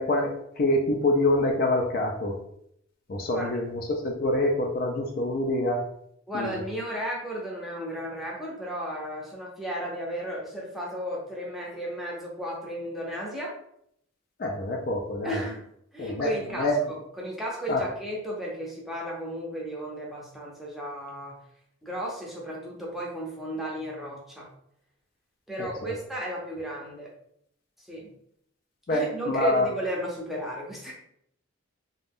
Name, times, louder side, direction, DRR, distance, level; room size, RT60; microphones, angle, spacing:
voice 1, 0.0-2.4 3.1-5.8 6.3-6.6 14.4-15.4 16.0-16.3 16.6-16.8 17.7-17.8 25.6-25.9 28.9-29.7, left 1 dB, 45° left, 1 dB, 0.4 m, -26 dB
voice 2, 6.3-13.5 15.2-15.6 15.9-21.4 21.8-24.5 25.5-27.1 27.8-28.1 28.9-30.9, equal, ahead, -4 dB, 0.6 m, -34 dB
2.5 x 2.2 x 3.4 m, 0.72 s
head